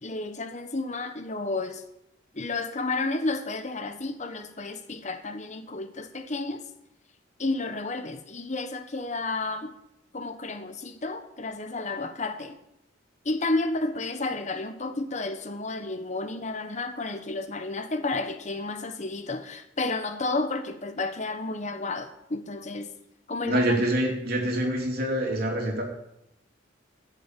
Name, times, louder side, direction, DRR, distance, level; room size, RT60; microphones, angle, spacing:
voice 1, 0.0-1.8 2.3-6.7 7.4-9.7 10.1-12.6 13.2-22.9 23.3-23.9, left 2 dB, 40° left, 1.1 m, -31 dB
voice 2, 23.4-25.8, right 1 dB, 55° right, 3.6 m, -25 dB
15.0 x 7.1 x 9.0 m
head